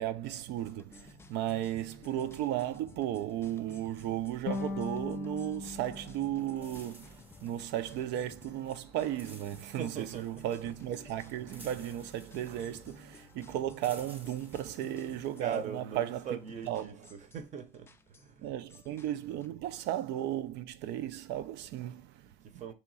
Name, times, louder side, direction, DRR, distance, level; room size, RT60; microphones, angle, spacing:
voice 1, 0.0-16.4 16.6-17.0 18.4-22.6, right 12 dB, 70° right, 0.6 m, -35 dB
sound 1, 0.6-19.5, left 4 dB, 15° left, 0.3 m, -56 dB
sound 2, 4.5-7.6, left 4 dB, 55° left, 0.6 m, -40 dB
sound 3, 6.4-16.7, right 1 dB, 10° right, 0.8 m, -57 dB
voice 2, 9.8-10.4 15.4-18.5 22.4-22.7, right 6 dB, 40° right, 0.8 m, -41 dB
3.5 x 3.0 x 4.7 m
cardioid pair, 140°, 18 cm